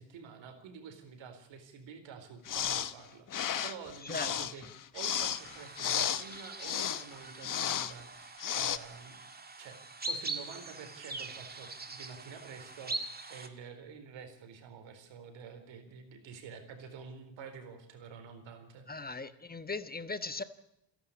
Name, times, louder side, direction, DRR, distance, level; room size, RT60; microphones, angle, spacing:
voice 1, 0.0-4.7 4.9-9.2 9.6-18.9, right 6 dB, 85° right, 7 dB, 4.3 m, -49 dB
sound 1, 2.4-2.9 3.3-7.0 7.4-7.9 8.4-8.8, left 9 dB, 45° left, 1.1 m, -33 dB
sound 2, 5.1-13.5, right 2 dB, 20° right, 2.0 m, -43 dB
voice 2, 18.9-20.4, left 3 dB, 20° left, 12 dB, 1.3 m, -38 dB
28.5 x 11.5 x 8.5 m, 0.82 s
cardioid pair, 115°, 44 cm